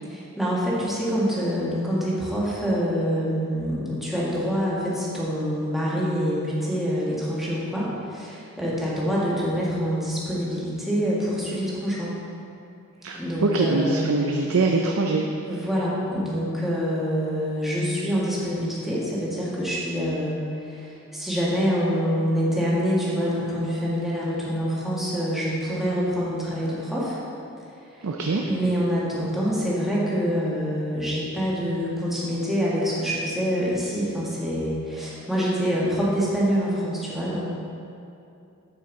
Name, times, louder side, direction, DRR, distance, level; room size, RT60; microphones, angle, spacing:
voice 1, 0.1-12.1 13.1-14.1 15.5-27.2 28.4-37.4, equal, ahead, -8 dB, 1.6 m, -26 dB
voice 2, 13.0-15.3 28.0-28.5, right 3 dB, 70° right, 1 dB, 0.5 m, -23 dB
10.0 x 5.5 x 4.0 m, 2.6 s
head